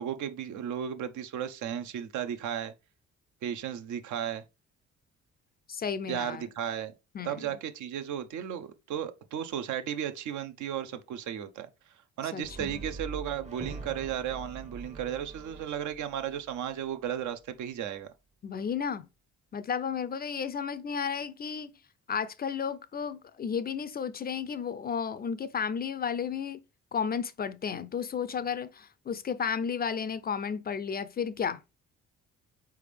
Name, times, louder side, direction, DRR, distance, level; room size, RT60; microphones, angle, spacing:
voice 1, 0.0-2.7 3.4-4.4 6.1-6.9 7.2-11.7 12.2-18.1, right 9 dB, 75° right, 0.6 m, -34 dB
voice 2, 5.7-6.5 7.1-7.4 12.3-12.8 18.4-19.1 19.5-21.7 22.1-26.6 26.9-31.6, left 7 dB, 35° left, 0.4 m, -33 dB
Brass instrument, 12.4-16.7, right 3 dB, 25° right, 0.6 m, -43 dB
4.2 x 3.5 x 3.2 m
cardioid pair, 90°, 30 cm